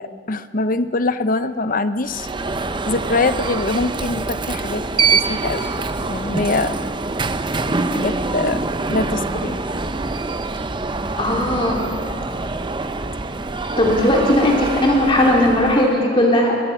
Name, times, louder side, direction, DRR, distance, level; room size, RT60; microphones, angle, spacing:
voice 1, 0.0-2.3 2.9-4.8 5.1-6.7 7.9-8.6 8.9-9.6, left 3 dB, 50° left, 12 dB, 0.7 m, -23 dB
Alarm, 2.1-16.0, right 3 dB, 25° right, 0.7 m, -25 dB
voice 2, 11.2-11.8 13.8-16.6, left 1 dB, 30° left, -1 dB, 2.6 m, -17 dB
22.0 x 21.5 x 5.7 m, 2.3 s
head